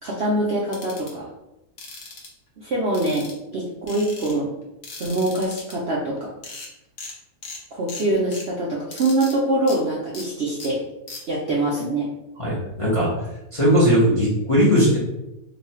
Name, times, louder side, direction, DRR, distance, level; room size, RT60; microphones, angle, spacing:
voice 1, 0.0-1.3 2.6-3.3 3.5-4.5 5.0-6.3 7.7-10.8 11.3-12.1, right 1 dB, 60° right, -4 dB, 0.7 m, -24 dB
sound 1, 0.7-1.1 1.8-2.3 2.9-3.5 3.9-4.3 4.8-5.7 6.2-6.3 6.4-6.7 7.0-7.1 7.4-7.6 7.9-8.4 8.9-9.3 9.7-9.8 10.1-10.2 10.6-10.7 11.1-11.2, left 3 dB, 60° left, 1.1 m, -37 dB
voice 2, 12.4-13.3 13.5-15.0, equal, 25° left, -7 dB, 0.7 m, -18 dB
3.1 x 2.3 x 4.1 m, 0.89 s
omnidirectional pair, 1.7 m